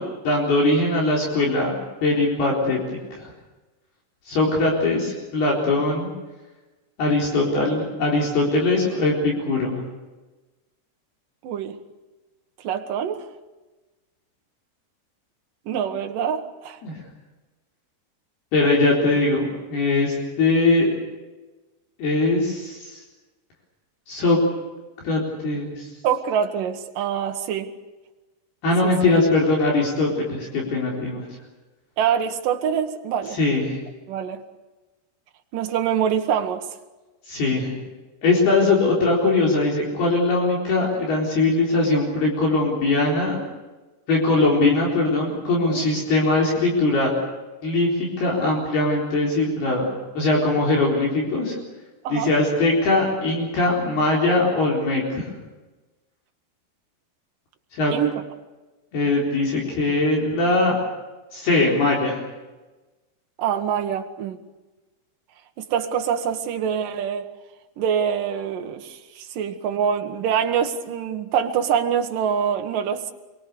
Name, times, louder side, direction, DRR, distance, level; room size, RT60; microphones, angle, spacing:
voice 1, 0.0-1.7 2.0-3.3 4.3-6.1 7.0-9.8 16.8-17.0 18.5-20.9 22.0-23.0 24.1-24.4 25.0-25.9 28.6-31.2 33.3-33.8 37.3-37.8 38.2-43.4 44.1-47.1 47.6-51.6 52.1-55.2 57.7-57.9 58.9-60.8 61.3-62.2, left 2 dB, 60° left, 6.0 m, -21 dB
voice 2, 11.4-11.8 12.6-13.3 15.7-16.8 26.0-27.7 28.8-28.9 32.0-33.4 34.1-34.4 35.5-36.7 45.7-45.9 52.0-52.3 57.9-58.1 63.4-64.4 65.6-67.3 67.8-73.1, right 8 dB, 60° right, 2.7 m, -25 dB
27.0 x 23.5 x 6.8 m
omnidirectional pair, 5.1 m